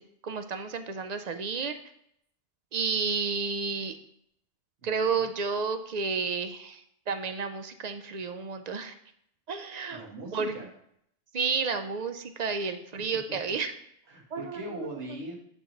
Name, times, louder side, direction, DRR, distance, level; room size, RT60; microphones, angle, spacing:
voice 1, 0.2-1.8 2.7-4.0 4.8-8.9 9.5-10.0 10.3-10.5 11.3-13.7 14.3-14.6, right 5 dB, 50° right, 8 dB, 0.5 m, -31 dB
voice 2, 4.8-5.3 9.9-10.7 14.1-15.3, right 1 dB, 85° right, -2 dB, 1.8 m, -40 dB
9.0 x 3.0 x 5.1 m, 0.73 s
omnidirectional pair, 1.1 m